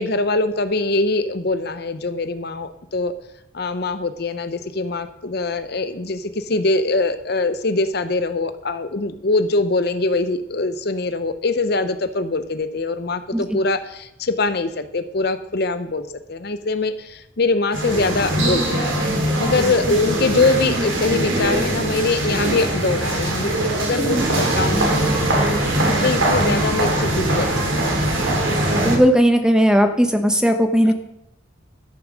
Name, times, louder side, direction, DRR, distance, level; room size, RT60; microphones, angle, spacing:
voice 1, 0.0-3.1 3.5-18.9 19.4-25.2 25.9-27.5 27.7-27.8 30.9-31.0, left 3 dB, 55° left, 11 dB, 0.7 m, -23 dB
sound 1, 17.7-29.0, right 1 dB, 85° right, 2.9 m, -21 dB
voice 2, 28.8-30.9, equal, 5° right, 6 dB, 0.9 m, -16 dB
13.0 x 6.9 x 6.2 m, 0.81 s
head